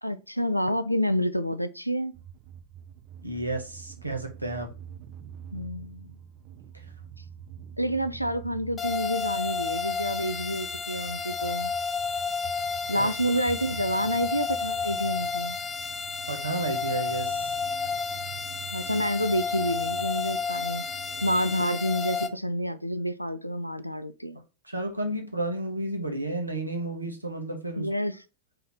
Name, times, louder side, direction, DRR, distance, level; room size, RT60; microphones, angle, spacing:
voice 1, 0.0-2.1 5.5-6.1 7.8-11.7 12.9-15.6 18.7-24.4 27.8-28.2, equal, 90° left, 0.3 m, -28 dB
sound 1, 2.1-21.6, right 9 dB, 35° right, 0.4 m, -46 dB
voice 2, 3.2-4.7 12.9-13.1 16.3-17.5 24.6-27.9, right 2 dB, 85° right, 0.9 m, -32 dB
sound 2, 8.8-22.3, left 5 dB, 20° left, 0.5 m, -31 dB
3.3 x 2.7 x 3.8 m
figure-of-eight pair, 90°, 0 cm